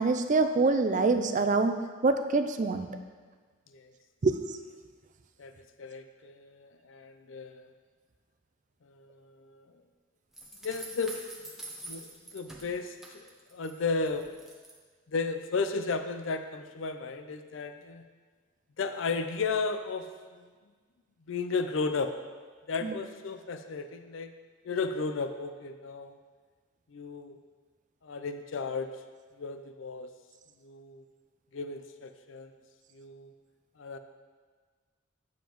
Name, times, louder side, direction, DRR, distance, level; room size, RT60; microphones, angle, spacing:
voice 1, 0.0-2.9 4.2-4.4 22.8-23.0, right 3 dB, 40° right, 8 dB, 0.4 m, -25 dB
voice 2, 5.4-7.7 8.9-9.6 10.6-11.2 11.8-14.3 15.1-18.0 18.8-20.1 20.3-20.5 21.3-22.1 22.7-24.3 24.6-26.2 26.9-27.4 28.0-28.9 29.4-30.1 30.6-31.0 31.5-32.5 32.9-33.3 33.8-34.0, left 4 dB, 75° left, 8 dB, 0.5 m, -34 dB
sound 1, 10.3-13.7 14.1-14.7, right 1 dB, ahead, 0.7 m, -45 dB
9.1 x 7.2 x 3.0 m, 1.5 s
head